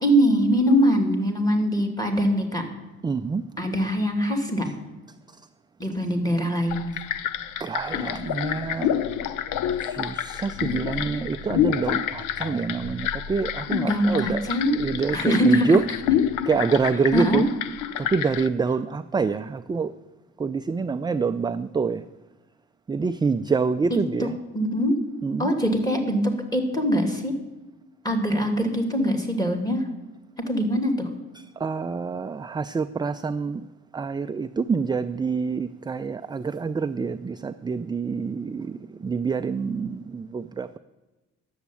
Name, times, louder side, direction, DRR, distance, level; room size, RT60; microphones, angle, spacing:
voice 1, 0.0-2.6 3.6-4.7 5.8-6.9 13.8-14.8 15.1-15.7 17.1-17.4 23.9-24.3 24.5-25.0 25.4-27.3 28.0-29.8 30.4-31.1, equal, 10° left, 4 dB, 2.3 m, -23 dB
voice 2, 3.0-3.4 7.6-8.9 9.8-14.5 14.8-15.9 16.5-17.5 18.0-19.9 20.4-22.0 22.9-24.4 25.2-25.5 31.3-33.6 33.9-40.8, right 5 dB, 15° right, 9 dB, 0.3 m, -26 dB
sound 1, 6.7-18.5, left 9 dB, 90° left, 0.6 m, -28 dB
11.0 x 7.2 x 8.4 m, 1.1 s
cardioid pair, 90°, 30 cm